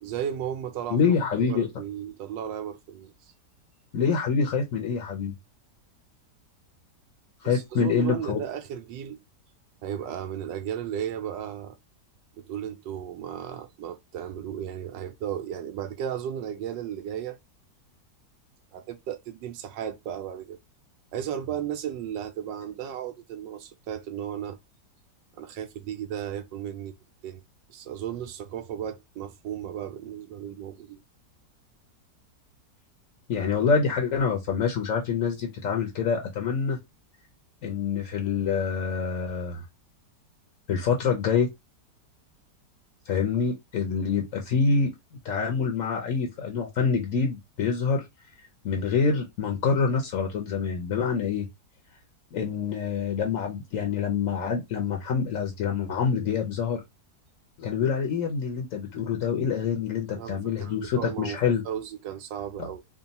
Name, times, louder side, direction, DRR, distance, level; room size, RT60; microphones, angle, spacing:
voice 1, 0.0-3.1 7.4-9.2 9.8-11.7 12.4-17.4 18.7-20.6 21.1-24.6 25.3-26.9 27.2-27.4 27.7-31.0 60.2-61.4 61.6-62.8, right 9 dB, 85° right, 1.3 m, -35 dB
voice 2, 0.9-1.7 3.9-5.3 7.4-8.4 33.3-36.8 37.6-39.6 40.7-41.5 43.0-44.9 45.2-48.1 48.6-51.5 52.3-56.8 57.6-61.6 62.6-62.7, left 5 dB, 55° left, 1.0 m, -26 dB
3.6 x 2.3 x 4.0 m
omnidirectional pair, 1.9 m